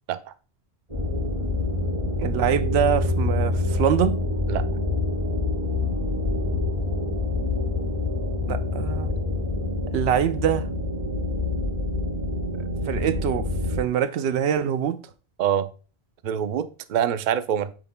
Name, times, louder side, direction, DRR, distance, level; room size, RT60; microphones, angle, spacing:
sound 1, 0.9-13.8, left 2 dB, 30° right, 3.6 m, -26 dB
voice 1, 2.2-4.2 8.5-9.1 9.9-10.7 12.9-13.5 13.8-15.0, right 9 dB, 85° right, 0.9 m, -24 dB
voice 2, 16.2-17.7, right 9 dB, 55° right, 0.6 m, -25 dB
9.0 x 6.2 x 2.2 m
omnidirectional pair, 1.1 m